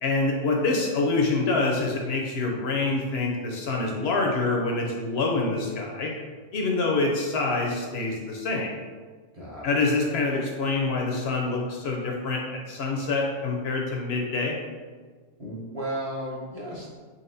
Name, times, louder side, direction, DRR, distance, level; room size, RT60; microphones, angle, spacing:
voice 1, 0.0-6.1 6.5-8.7 9.6-14.5, left 3 dB, 65° left, 0 dB, 0.7 m, -26 dB
voice 2, 9.3-9.7 15.4-16.9, right 1 dB, 35° right, -6 dB, 0.8 m, -34 dB
4.1 x 3.7 x 2.6 m, 1.5 s
omnidirectional pair, 1.2 m